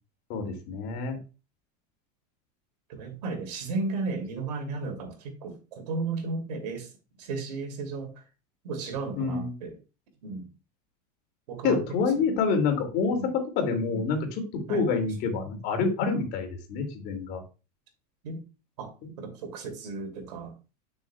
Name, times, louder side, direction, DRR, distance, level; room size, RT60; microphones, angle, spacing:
voice 1, 0.3-1.2 9.2-9.5 11.6-13.2 13.6-14.4 14.7-17.4, left 4 dB, 55° left, 2.5 m, -27 dB
voice 2, 2.9-6.9 7.2-8.2 8.6-9.8 10.2-10.5 11.5-11.8 12.1-12.3 13.1-13.3 14.7-14.9 18.2-18.4 18.8-20.5, right 3 dB, 90° right, 2.6 m, -34 dB
10.0 x 6.3 x 2.3 m
supercardioid pair, 135°, 20 cm